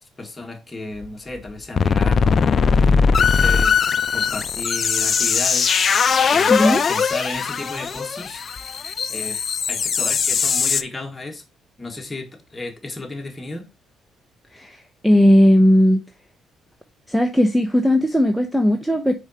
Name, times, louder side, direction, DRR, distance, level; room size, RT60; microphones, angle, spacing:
voice 1, 0.2-8.4 9.1-9.4 9.7-11.4 11.8-13.7, left 2 dB, 20° left, 1.8 m, -34 dB
sound 1, 1.0-1.1 1.5-1.6 1.8-10.8, left 6 dB, 45° left, 0.5 m, -20 dB
voice 2, 6.5-6.8 14.5-16.0 17.1-19.1, equal, ahead, 0.8 m, -16 dB
4.9 x 4.9 x 4.3 m
cardioid pair, 80°, 0 cm